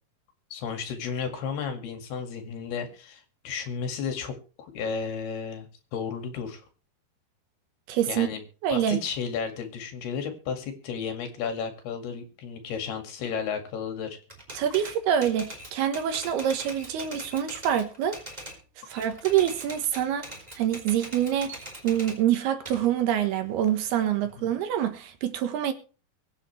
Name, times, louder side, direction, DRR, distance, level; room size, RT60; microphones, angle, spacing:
voice 1, 0.5-6.7 8.1-8.4 8.7-14.2, left 6 dB, 70° left, 4.0 m, -33 dB
voice 2, 7.9-8.3 8.6-9.0 14.5-18.2 18.9-20.3 20.6-21.6 21.8-25.7, right 10 dB, 70° right, 3.2 m, -26 dB
Typewriter, 14.3-18.6 18.9-22.2 22.7-24.3, right 1 dB, 10° right, 4.3 m, -42 dB
23.0 x 8.6 x 3.3 m
omnidirectional pair, 4.9 m